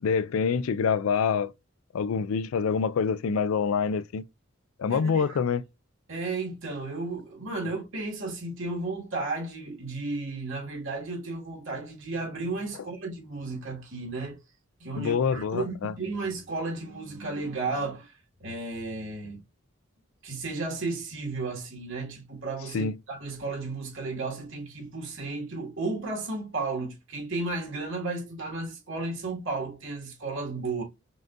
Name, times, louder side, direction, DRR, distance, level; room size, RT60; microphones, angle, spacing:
voice 1, 0.0-1.5 1.9-4.2 4.8-5.6 15.0-15.9 22.7-22.9, left 6 dB, 85° left, 0.4 m, -26 dB
voice 2, 4.9-5.4 6.1-14.4 14.8-18.1 18.4-19.4 20.2-30.8, right 3 dB, 70° right, 1.9 m, -33 dB
5.5 x 2.6 x 2.5 m
head